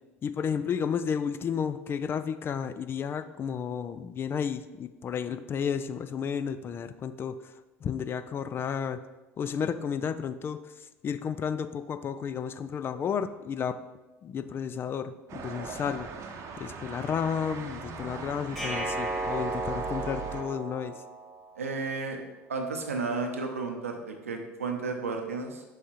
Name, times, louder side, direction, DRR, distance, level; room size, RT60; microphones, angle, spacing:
voice 1, 0.2-7.5 7.8-9.0 9.4-13.8 14.2-16.1 16.6-21.0, left 7 dB, 30° left, 12 dB, 0.3 m, -32 dB
sound 1, 15.3-20.4, right 5 dB, 40° right, 0.8 m, -40 dB
sound 2, 18.6-21.6, right 2 dB, 5° left, 1.7 m, -34 dB
voice 2, 21.6-22.2 22.5-25.6, right 4 dB, 80° right, 3 dB, 0.7 m, -33 dB
6.2 x 3.5 x 4.3 m, 1.1 s
figure-of-eight pair, 70°, 7 cm